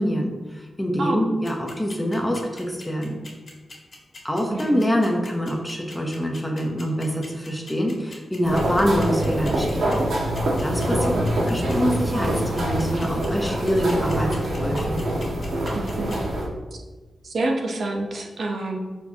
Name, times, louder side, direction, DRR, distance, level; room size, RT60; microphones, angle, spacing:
voice 1, 0.0-3.2 4.2-10.0 10.6-11.1 11.5-15.0, equal, 10° left, 1 dB, 0.9 m, -25 dB
sound 1, 1.4-16.1, left 3 dB, 35° left, 2.0 m, -42 dB
voice 2, 4.5-4.8 10.9-11.3 15.7-16.1 17.2-18.8, right 2 dB, 50° right, 1 dB, 0.9 m, -27 dB
sound 2, 8.4-16.5, right 1 dB, 65° right, 1.7 m, -25 dB
13.0 x 4.5 x 2.9 m, 1.3 s
wide cardioid pair, 175°, 0 cm